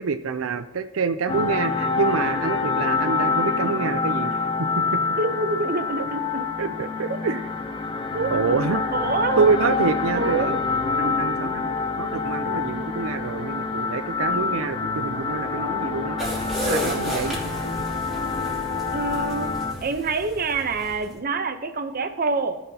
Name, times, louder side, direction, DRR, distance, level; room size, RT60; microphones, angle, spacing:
voice 1, 0.0-5.0 6.6-7.5 8.3-8.8 9.4-10.6 10.9-16.2 16.6-17.4, right 5 dB, 90° right, 10 dB, 0.5 m, -26 dB
sound 1, 1.3-19.7, left 4 dB, 25° left, 0.9 m, -26 dB
voice 2, 5.2-6.7 8.1-8.4 8.9-9.4 10.2-10.6 18.9-19.5 19.8-22.6, right 3 dB, 45° right, 7 dB, 0.8 m, -26 dB
sound 2, 16.2-21.2, equal, ahead, 2.6 m, -32 dB
16.5 x 5.8 x 2.8 m, 1.1 s
head